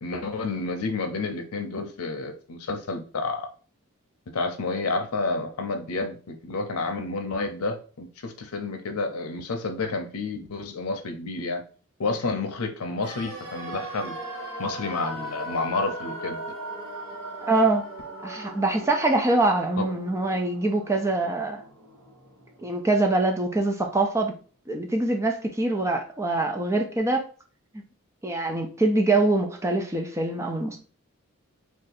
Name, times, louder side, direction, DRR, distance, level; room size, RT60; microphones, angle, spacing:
voice 1, 0.0-3.5 4.3-11.6 12.0-14.1 14.6-16.4 19.8-19.9, left 3 dB, 85° left, 0.6 m, -30 dB
sound 1, 13.0-23.0 23.2-23.3, right 1 dB, 70° right, 1.0 m, -38 dB
voice 2, 17.5-17.9 18.2-21.6 22.6-24.3 24.7-27.2 28.2-30.8, right 2 dB, 15° right, 0.5 m, -24 dB
2.7 x 2.4 x 4.0 m
head